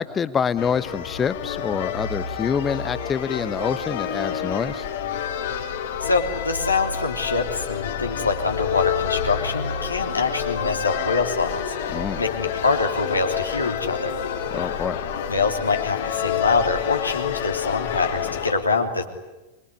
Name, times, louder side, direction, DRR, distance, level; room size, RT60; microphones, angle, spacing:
voice 1, 0.0-4.8 11.9-12.2 14.5-15.0, left 7 dB, 20° left, 15 dB, 1.1 m, -26 dB
sound 1, 0.6-18.5, left 8 dB, 55° left, 3.2 m, -28 dB
voice 2, 6.0-14.2 15.3-19.0, left 4 dB, 80° left, 3 dB, 3.1 m, -25 dB
25.0 x 23.0 x 9.8 m, 1.1 s
figure-of-eight pair, 90°, 0 cm